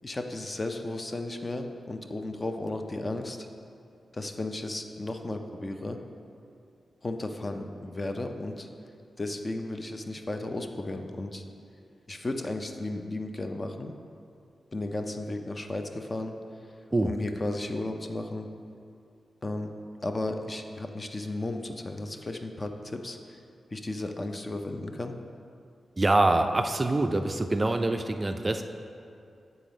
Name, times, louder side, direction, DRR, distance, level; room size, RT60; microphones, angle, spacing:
voice 1, 0.0-3.5 4.1-6.0 7.0-8.7 9.2-11.4 12.1-13.9 14.7-16.3 17.0-18.5 19.4-19.7 20.0-23.4 23.7-25.1, left 2 dB, 30° left, 5 dB, 0.5 m, -34 dB
voice 2, 26.0-28.6, right 2 dB, 30° right, 6 dB, 0.3 m, -25 dB
7.3 x 3.9 x 5.1 m, 2.5 s
cardioid pair, 75°, 0 cm